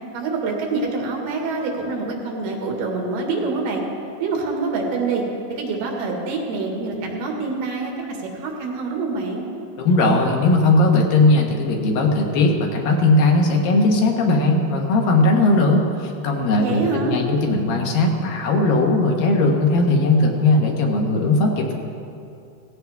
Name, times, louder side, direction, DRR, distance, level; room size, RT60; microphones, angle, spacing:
voice 1, 0.1-3.8 4.2-5.2 5.5-9.5 16.6-17.2, right 3 dB, 85° right, 0 dB, 3.7 m, -26 dB
voice 2, 9.8-21.7, left 2 dB, 70° left, 1 dB, 3.0 m, -18 dB
17.0 x 15.5 x 3.5 m, 2.6 s
omnidirectional pair, 4.5 m